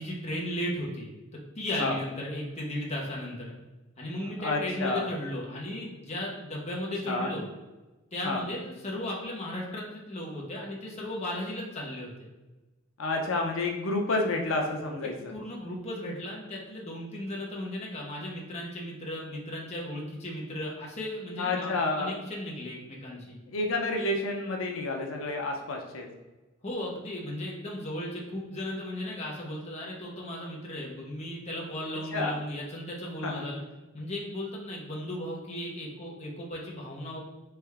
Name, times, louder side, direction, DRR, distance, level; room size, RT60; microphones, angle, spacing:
voice 1, 0.0-3.5 4.0-7.4 8.1-12.3 15.3-23.4 26.6-33.6 33.9-37.2, left 1 dB, 35° left, -3 dB, 0.9 m, -36 dB
voice 2, 4.4-5.1 7.0-7.3 8.2-8.4 13.0-15.3 21.4-22.2 23.5-26.1 32.1-32.4 33.2-33.4, left 2 dB, 90° left, 2 dB, 0.6 m, -29 dB
3.4 x 3.4 x 3.4 m, 1.2 s
head